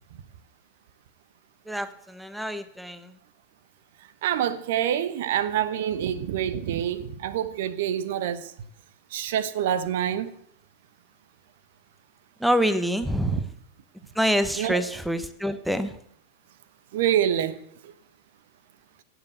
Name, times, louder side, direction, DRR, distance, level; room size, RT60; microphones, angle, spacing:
voice 1, 1.7-3.2 12.4-13.5 14.1-16.0, equal, ahead, 1.1 m, -26 dB
voice 2, 4.2-8.5 9.1-10.3 14.6-14.8 16.9-17.6 17.8-17.9, right 10 dB, 55° right, 1.1 m, -26 dB
16.5 x 8.0 x 8.0 m
figure-of-eight pair, 90°, 0 cm